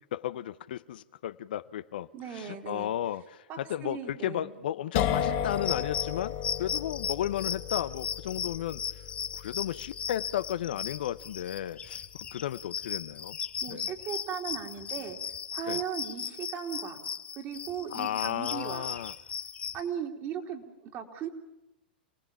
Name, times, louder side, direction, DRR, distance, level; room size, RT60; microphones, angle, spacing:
voice 1, 0.1-8.8 9.3-13.4 13.7-13.8 15.7-15.8 17.9-19.1, left 11 dB, 65° left, 14 dB, 0.8 m, -34 dB
voice 2, 2.1-2.9 3.5-4.5 13.6-15.2 15.5-17.0 17.3-18.9 19.7-21.3, right 8 dB, 40° right, 3 dB, 3.2 m, -37 dB
sound 1, 4.9-12.5, left 9 dB, 45° left, 2.3 m, -35 dB
sound 2, 5.5-19.8, left 7 dB, 25° left, 2.3 m, -37 dB
28.5 x 18.5 x 7.2 m, 0.91 s
hypercardioid pair, 105°, 5 cm